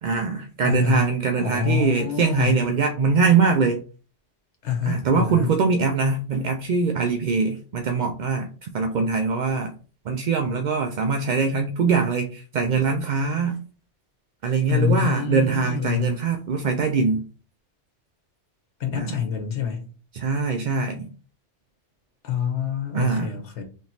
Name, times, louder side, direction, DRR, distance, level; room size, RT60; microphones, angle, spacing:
voice 1, 0.0-3.8 4.9-9.7 10.1-13.6 14.4-17.2 18.9-19.2 20.1-21.1 22.9-23.3, right 5 dB, 60° right, 0.5 m, -23 dB
voice 2, 0.6-1.1 1.4-2.6 4.6-5.5 14.7-16.2 18.8-19.8 22.2-23.6, left 8 dB, 75° left, 1.3 m, -26 dB
3.5 x 2.9 x 4.0 m
omnidirectional pair, 1.2 m